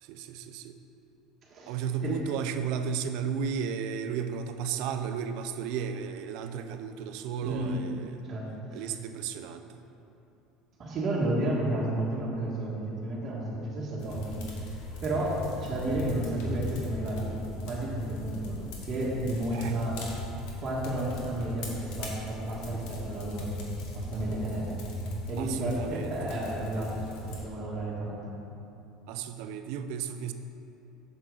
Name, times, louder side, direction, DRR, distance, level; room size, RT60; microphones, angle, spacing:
voice 1, 0.0-0.8 1.7-8.3 8.7-9.8 19.5-19.8 25.4-26.3 29.1-30.3, right 7 dB, 75° right, 8 dB, 0.4 m, -34 dB
voice 2, 1.5-2.2 7.4-7.8 8.2-8.8 10.8-17.4 17.6-20.0 20.6-23.6 23.9-24.9 25.3-28.3, right 1 dB, 35° right, -5 dB, 1.6 m, -32 dB
sound 1, 14.0-27.4, left 1 dB, 75° left, 1.3 m, -39 dB
7.4 x 6.5 x 3.8 m, 2.9 s
supercardioid pair, 105°, 0 cm